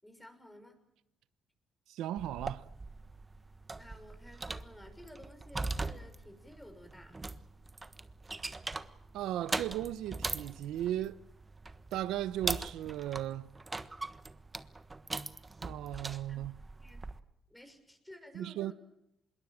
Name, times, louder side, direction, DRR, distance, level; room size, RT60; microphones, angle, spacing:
voice 1, 0.0-0.8 3.8-7.3 16.3-16.4 16.8-17.0 17.5-18.7, left 1 dB, 5° left, 6.3 m, -53 dB
voice 2, 1.9-2.6 9.1-11.2 11.9-13.5 15.6-16.5 18.3-18.7, right 12 dB, 85° right, 0.9 m, -36 dB
sound 1, 2.2-17.2, right 3 dB, 20° right, 1.3 m, -41 dB
26.0 x 22.0 x 7.5 m
cardioid pair, 90°, 0 cm